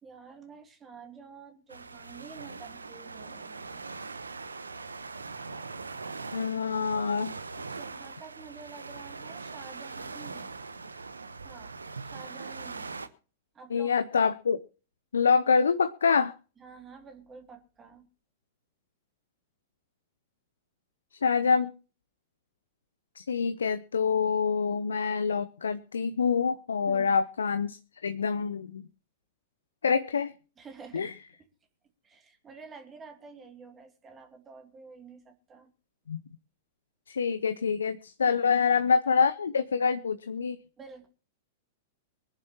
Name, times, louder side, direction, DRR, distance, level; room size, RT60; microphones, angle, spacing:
voice 1, 0.0-3.8 7.6-10.6 11.4-11.8 12.0-13.0 13.5-14.3 16.6-18.1 26.8-27.2 30.6-31.1 32.0-35.7 38.3-38.4 40.8-41.1, right 5 dB, 20° right, 2.6 m, -49 dB
sound 1, 1.7-13.1, right 4 dB, 80° right, 1.0 m, -41 dB
voice 2, 6.3-7.3 13.7-14.6 15.1-16.3 21.1-21.7 23.2-28.9 29.8-30.3 30.9-31.1 36.1-36.2 37.1-40.6, left 5 dB, 75° left, 0.7 m, -26 dB
24.0 x 10.5 x 3.0 m
figure-of-eight pair, 100°, 0 cm